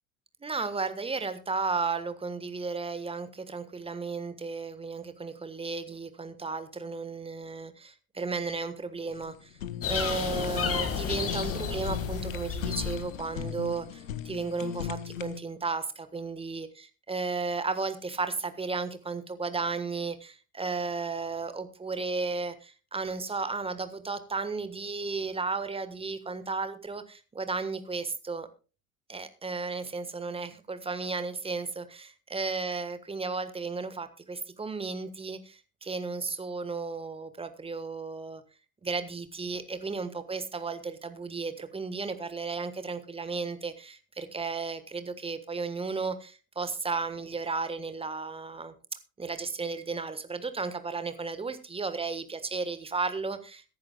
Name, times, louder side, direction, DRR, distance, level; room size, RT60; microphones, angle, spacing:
voice 1, 0.4-9.6 9.9-16.7 17.1-28.5 29.1-38.4 38.8-48.7 49.2-53.6, right 4 dB, 15° right, 10 dB, 1.4 m, -34 dB
Fire, 9.1-15.4, left 9 dB, 70° left, 1.2 m, -38 dB
sound 1, 9.8-13.3, left 7 dB, 35° left, 2.0 m, -32 dB
22.5 x 10.5 x 2.3 m, 0.33 s
figure-of-eight pair, 70°, 42 cm